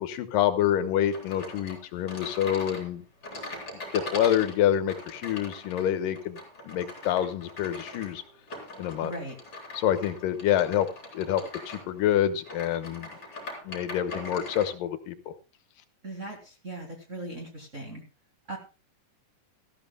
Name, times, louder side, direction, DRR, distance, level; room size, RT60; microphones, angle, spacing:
voice 1, 0.0-3.0 3.9-6.4 6.7-8.2 8.8-9.1 9.7-10.9 11.1-13.1 13.7-15.3, left 11 dB, 85° left, 9 dB, 2.6 m, -27 dB
sound 1, 1.1-14.7, left 2 dB, 30° left, 4.3 m, -41 dB
voice 2, 9.0-9.4 16.0-18.0 18.5-18.6, right 2 dB, 30° right, 0 dB, 1.6 m, -38 dB
18.0 x 13.5 x 2.2 m, 0.31 s
omnidirectional pair, 3.9 m